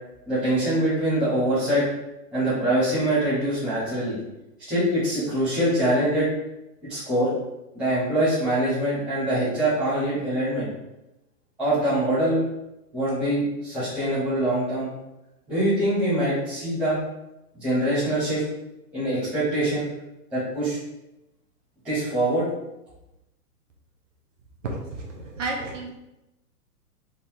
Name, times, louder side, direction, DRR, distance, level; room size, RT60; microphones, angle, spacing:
voice 1, 0.2-1.9 2.3-4.2 4.7-6.3 6.9-7.3 7.7-10.7 11.6-12.4 12.9-14.9 15.5-17.0 17.5-18.4 18.9-19.9 20.3-20.8 21.8-22.5, right 1 dB, ahead, -16 dB, 0.7 m, -24 dB
voice 2, 24.6-25.9, right 3 dB, 50° right, 0 dB, 0.9 m, -31 dB
3.7 x 2.9 x 4.4 m, 0.95 s
hypercardioid pair, 175°, 47 cm